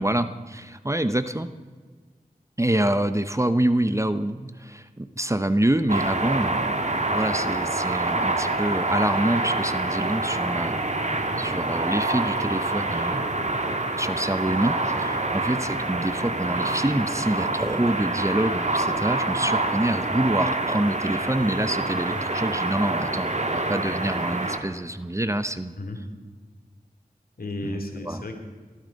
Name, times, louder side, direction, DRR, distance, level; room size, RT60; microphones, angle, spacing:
voice 1, 0.0-1.5 2.6-13.3 14.0-25.7 27.7-28.2, right 1 dB, 20° right, 11 dB, 0.8 m, -26 dB
sound 1, 5.9-24.6, right 2 dB, 50° right, 1.7 m, -26 dB
voice 2, 11.1-11.4 15.2-15.4 21.9-22.2 25.8-26.0 27.4-28.4, left 1 dB, 70° left, 3 dB, 2.6 m, -35 dB
20.0 x 13.0 x 5.3 m, 1.5 s
wide cardioid pair, 45°, 16 cm